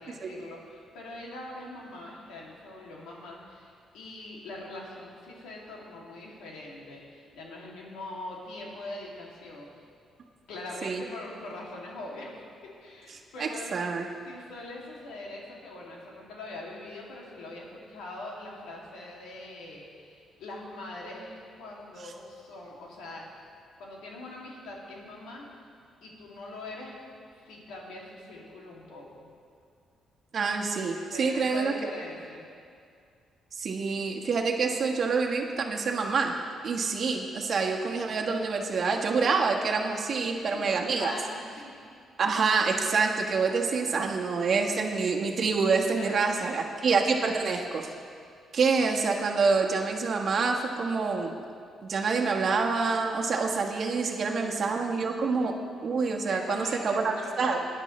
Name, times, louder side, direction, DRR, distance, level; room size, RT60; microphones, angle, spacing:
voice 1, 0.0-9.8 10.5-13.7 14.2-23.3 23.8-25.7 26.0-27.0 27.4-29.3 30.9-32.5 40.3-41.8 45.9-46.8 54.3-55.4 56.2-57.6, left 2 dB, 90° left, -3 dB, 2.5 m, -42 dB
voice 2, 13.4-14.0 30.3-31.7 33.6-36.3 36.6-41.1 42.2-47.9 48.5-51.3 51.9-55.5 55.8-57.6, right 4 dB, 50° right, 1 dB, 1.3 m, -27 dB
18.0 x 10.5 x 3.2 m, 2.3 s
cardioid pair, 90°, 0 cm